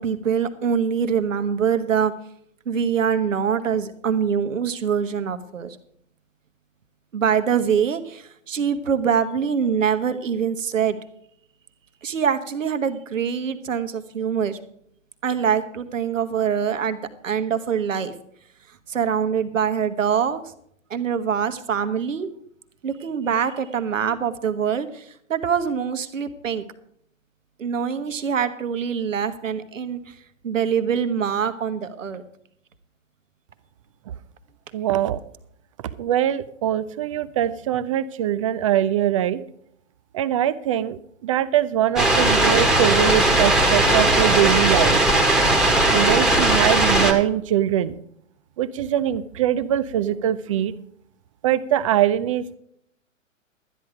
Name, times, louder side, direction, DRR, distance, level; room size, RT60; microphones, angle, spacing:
voice 1, 0.0-2.1 2.6-5.8 7.1-11.0 12.0-14.6 15.2-18.1 18.9-20.4 20.9-22.3 22.8-26.6 27.6-30.1 30.4-32.2, right 7 dB, 70° right, 9 dB, 1.4 m, -24 dB
voice 2, 34.7-35.2 36.0-39.4 40.1-45.0 45.9-47.9 48.6-50.7 51.4-52.6, right 11 dB, 25° right, 15 dB, 0.4 m, -22 dB
sound 1, 42.0-47.1, right 1 dB, ahead, 1.4 m, -18 dB
12.5 x 10.5 x 4.9 m, 0.69 s
figure-of-eight pair, 115°, 40 cm